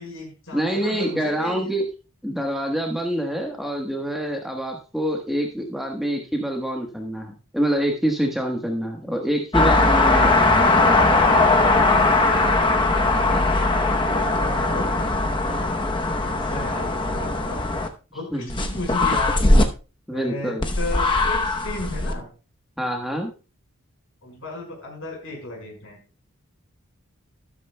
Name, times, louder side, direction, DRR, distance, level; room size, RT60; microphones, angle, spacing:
voice 1, 0.0-1.7 12.0-12.9 14.1-14.9 16.5-17.7 18.1-19.3 20.1-22.3 24.2-26.0, left 2 dB, 60° left, 1 dB, 5.1 m, -34 dB
voice 2, 0.5-1.9 2.2-10.6 18.3-18.6 20.1-20.7 22.8-23.3, right 1 dB, ahead, 1 dB, 1.2 m, -26 dB
sound 1, 9.5-17.9 18.5-19.7 20.6-22.1, left 2 dB, 20° left, 0.8 m, -19 dB
12.5 x 12.5 x 2.2 m, 0.33 s
head